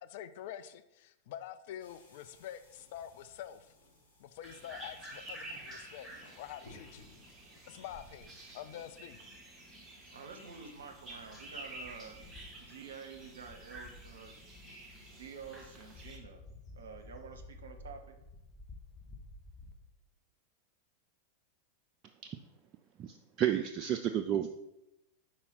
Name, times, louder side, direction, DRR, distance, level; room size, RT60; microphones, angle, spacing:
voice 1, 0.0-3.7 4.2-7.1 7.7-9.2, left 10 dB, 50° left, 0.4 m, -47 dB
sound 1, 1.8-8.3, left 1 dB, 70° left, 2.0 m, -60 dB
sound 2, 4.4-16.2, right 1 dB, 15° right, 1.4 m, -50 dB
sound 3, 5.2-5.4 5.9-6.1 6.5-8.0 8.6-8.7 10.4-19.7, left 2 dB, 25° left, 1.1 m, -54 dB
voice 2, 10.1-12.2 12.6-14.4 15.1-16.4 16.7-18.2, right 5 dB, 65° right, 0.7 m, -49 dB
voice 3, 23.0-24.5, right 10 dB, 35° right, 0.3 m, -31 dB
5.6 x 4.2 x 4.1 m
figure-of-eight pair, 90°, 0 cm